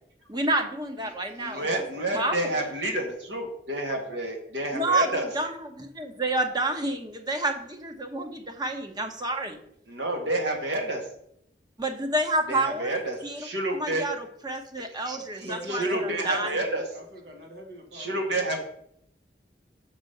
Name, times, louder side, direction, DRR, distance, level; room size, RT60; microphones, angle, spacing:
voice 1, 0.3-1.8 2.1-2.5 4.7-9.6 11.8-13.5 13.7-16.5, right 2 dB, 25° right, 5 dB, 1.0 m, -29 dB
voice 2, 1.4-5.3 9.9-11.0 12.5-14.0 15.3-16.8 17.9-18.6, right 1 dB, 85° right, 2 dB, 1.8 m, -29 dB
voice 3, 15.4-18.6, left 1 dB, 65° right, 1 dB, 1.4 m, -39 dB
6.1 x 5.4 x 6.6 m, 0.73 s
head